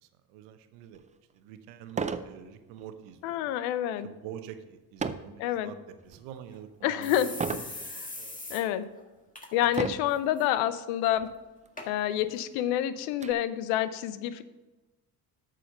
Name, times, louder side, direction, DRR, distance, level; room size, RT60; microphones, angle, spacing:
voice 1, 0.0-1.0 1.3-3.4 4.0-7.3 8.2-8.4 9.6-9.7, right 9 dB, 90° right, 9 dB, 0.9 m, -46 dB
sound 1, 0.9-1.0 1.9-2.3 2.8-3.1 5.0-5.4 6.0-6.4 7.4-7.7 8.5-8.6 9.7-10.2 11.2-11.3 11.6-11.7 12.2-13.3, right 5 dB, 15° right, 0.4 m, -33 dB
voice 2, 3.2-4.1 5.4-5.7 6.8-8.1 8.5-8.9 9.5-11.3 11.9-14.4, left 11 dB, 85° left, 14 dB, 0.7 m, -28 dB
sound 2, 6.1-6.2 6.5-6.6 7.0-8.6 9.0-9.1 9.4-9.8 10.1-10.5 11.1-11.2 11.8-11.9 12.6-12.7, left 2 dB, 15° left, 1.6 m, -41 dB
8.6 x 6.4 x 5.3 m, 1.1 s
supercardioid pair, 75°, 47 cm